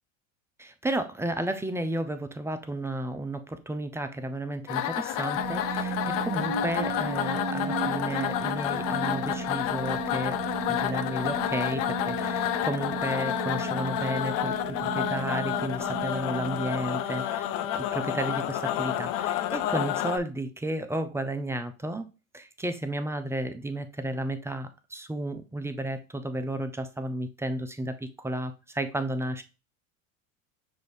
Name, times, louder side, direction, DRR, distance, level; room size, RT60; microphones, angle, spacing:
voice 1, 0.6-10.4 10.7-17.5 17.8-22.1 22.3-29.4, right 1 dB, 5° right, 0.4 m, -33 dB
sound 1, 4.7-20.2, left 12 dB, 50° left, 0.6 m, -30 dB
sound 2, 5.4-17.5, right 6 dB, 45° right, 0.8 m, -36 dB
6.1 x 2.5 x 3.5 m
hypercardioid pair, 80°, 41 cm